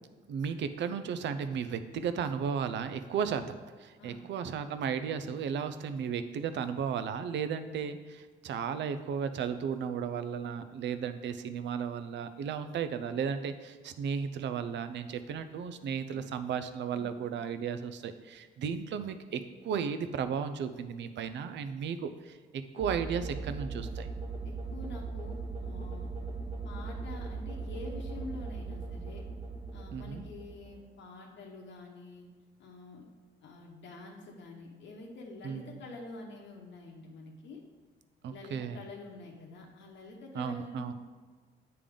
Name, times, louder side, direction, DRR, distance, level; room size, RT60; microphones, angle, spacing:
voice 1, 0.3-24.1 29.9-30.2 35.4-35.8 38.2-38.8 40.3-40.9, right 7 dB, 65° right, 11 dB, 0.5 m, -35 dB
sound 1, 22.8-31.0, right 4 dB, 25° right, 1.4 m, -39 dB
voice 2, 24.4-26.1 26.6-29.2 29.7-32.3 32.6-33.0 33.4-37.6 38.3-40.9, left 2 dB, 70° left, -1 dB, 1.0 m, -47 dB
8.5 x 3.4 x 3.7 m, 1.4 s
cardioid pair, 90°, 20 cm